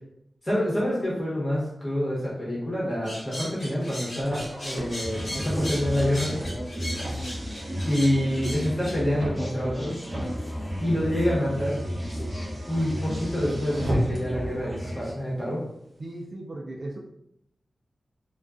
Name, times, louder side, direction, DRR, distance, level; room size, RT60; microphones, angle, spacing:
voice 1, 0.4-6.4 7.8-10.0 10.8-11.8 12.7-15.6, equal, 20° left, -6 dB, 1.0 m, -27 dB
sound 1, 3.0-8.9, left 1 dB, 50° left, 1.1 m, -37 dB
Car, 3.8-14.4, equal, 70° right, 0.7 m, -37 dB
sound 2, 5.0-15.1, equal, 5° left, 0.6 m, -33 dB
voice 2, 16.0-17.0, right 2 dB, 50° right, -1 dB, 0.3 m, -37 dB
2.3 x 2.3 x 2.4 m, 0.77 s
wide cardioid pair, 120°, 0 cm